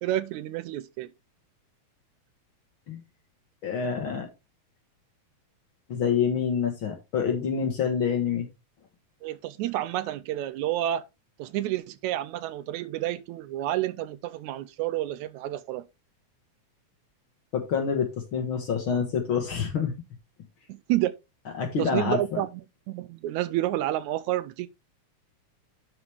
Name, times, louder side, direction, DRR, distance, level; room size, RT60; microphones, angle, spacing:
voice 1, 0.0-1.1 9.2-11.0 11.4-15.9 20.7-21.1 21.8-22.5 22.9-24.7, right 14 dB, 80° right, 1.8 m, -29 dB
voice 2, 3.6-4.3 5.9-8.5 17.5-19.9 21.6-22.4, left 6 dB, 55° left, 1.7 m, -27 dB
11.0 x 4.9 x 3.3 m
omnidirectional pair, 3.5 m